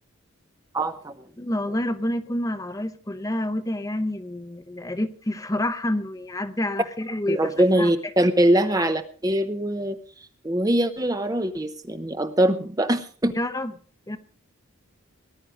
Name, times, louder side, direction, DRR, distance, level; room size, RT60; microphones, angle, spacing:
voice 1, 0.7-1.1 7.3-10.0 10.4-13.3, right 1 dB, 15° right, 9 dB, 0.7 m, -22 dB
voice 2, 1.4-7.9 13.4-13.7 14.1-14.2, left 1 dB, 15° left, 11 dB, 0.8 m, -28 dB
19.0 x 11.0 x 5.0 m, 0.43 s
head